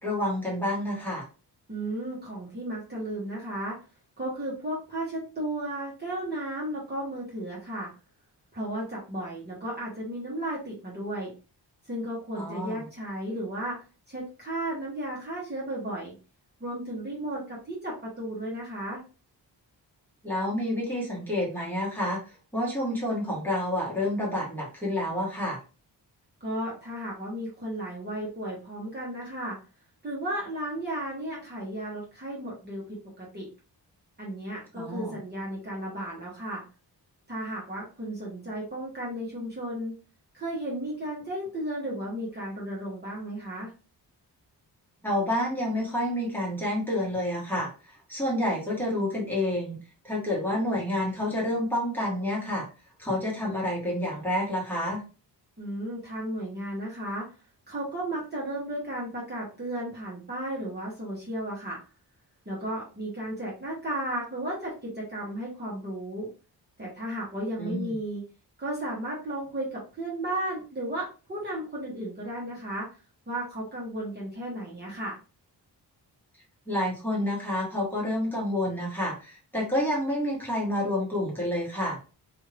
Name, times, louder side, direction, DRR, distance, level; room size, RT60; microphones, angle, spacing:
voice 1, 0.0-1.2 12.3-12.8 20.2-22.2 22.5-25.6 34.7-35.2 45.0-47.7 48.1-49.8 50.0-52.6 53.0-55.0 67.6-68.0 76.7-82.0, left 1 dB, 5° left, -5 dB, 1.3 m, -29 dB
voice 2, 1.7-3.8 4.2-7.9 8.5-11.3 11.9-13.8 14.1-16.1 16.6-19.0 26.4-29.6 30.0-33.5 34.2-36.6 37.3-39.9 40.3-43.7 55.6-57.3 57.7-61.8 62.5-66.3 66.8-68.2 68.6-72.9 73.3-75.2, right 1 dB, 25° right, -5 dB, 1.0 m, -34 dB
2.6 x 2.5 x 3.2 m, 0.34 s
wide cardioid pair, 120°, 41 cm